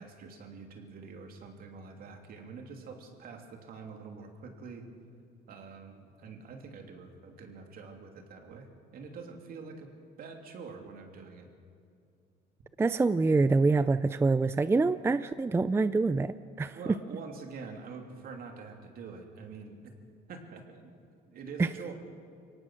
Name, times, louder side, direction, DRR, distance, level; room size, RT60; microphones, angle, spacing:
voice 1, 0.0-4.8 5.5-9.9 10.2-11.5 16.7-19.9 20.3-20.9 21.2-21.9, right 5 dB, 60° right, 3 dB, 3.1 m, -45 dB
voice 2, 12.8-16.8 21.6-21.7, right 3 dB, 15° right, 14 dB, 0.4 m, -26 dB
23.5 x 18.0 x 6.4 m, 2.5 s
cardioid pair, 110°, 17 cm